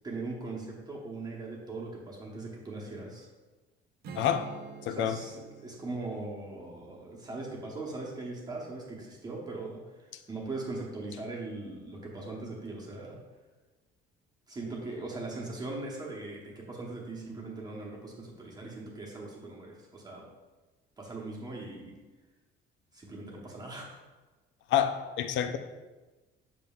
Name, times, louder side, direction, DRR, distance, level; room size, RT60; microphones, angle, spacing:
voice 1, 0.0-3.3 4.9-13.2 14.5-20.3 21.0-22.0 22.9-24.0, right 2 dB, 20° right, -3 dB, 0.9 m, -40 dB
Strum, 4.0-9.4, right 5 dB, 50° right, 0.7 m, -50 dB
voice 2, 4.8-5.2 24.7-25.6, left 9 dB, 70° left, 9 dB, 0.5 m, -28 dB
7.2 x 5.9 x 2.3 m, 1.2 s
cardioid pair, 170°, 20 cm